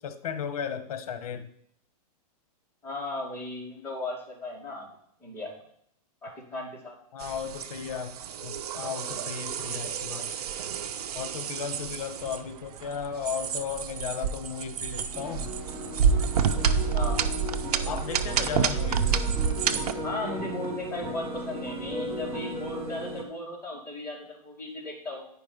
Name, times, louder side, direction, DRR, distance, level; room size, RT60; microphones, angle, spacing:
voice 1, 0.0-1.5 7.1-10.3 11.1-15.5 17.8-19.2, left 7 dB, 65° left, 11 dB, 1.2 m, -35 dB
voice 2, 2.8-4.9 5.2-5.5 6.2-6.9 16.9-17.3 20.0-25.2, left 2 dB, 10° left, -5 dB, 2.7 m, -36 dB
sound 1, 7.2-19.9, right 7 dB, 75° right, 0.8 m, -29 dB
sound 2, 15.1-23.2, equal, 10° right, 1.4 m, -36 dB
9.6 x 5.3 x 5.2 m, 0.66 s
supercardioid pair, 160°, 20 cm